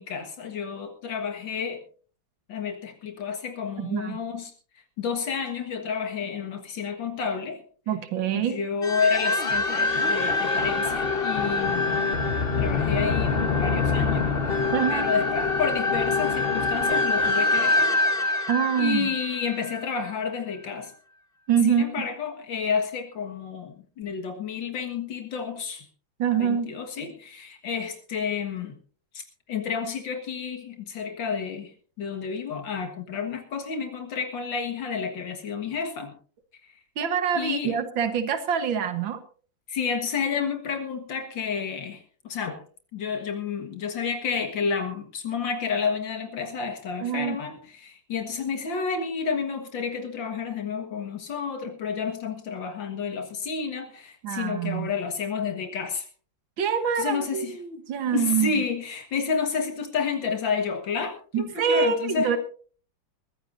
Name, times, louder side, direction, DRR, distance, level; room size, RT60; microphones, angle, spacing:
voice 1, 0.0-1.8 2.5-4.5 5.0-7.6 8.3-12.0 12.6-14.6 14.9-18.5 18.8-20.9 21.7-25.9 26.4-28.8 29.1-36.1 36.6-36.8 37.3-37.8 39.7-42.6 42.9-56.1 57.0-57.6 58.1-62.3, left 6 dB, 80° left, 6 dB, 2.3 m, -30 dB
voice 2, 3.8-4.2 7.9-8.6 14.7-15.1 18.5-19.1 21.5-21.9 26.2-26.7 37.0-39.2 47.0-47.4 54.2-54.9 56.6-58.6 61.3-62.4, right 7 dB, 90° right, 10 dB, 2.1 m, -25 dB
sound 1, 8.8-20.0, left 3 dB, 35° left, 1.2 m, -25 dB
21.5 x 15.5 x 2.6 m, 0.41 s
omnidirectional pair, 2.0 m